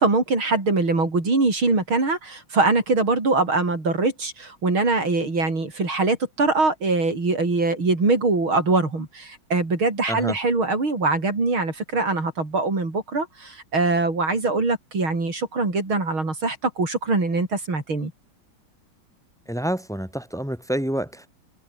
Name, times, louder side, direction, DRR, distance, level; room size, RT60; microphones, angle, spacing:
voice 1, 0.0-18.1, right 3 dB, 85° right, 6.6 m, -23 dB
voice 2, 19.5-21.3, right 1 dB, ahead, 5.3 m, -28 dB
omnidirectional pair, 2.2 m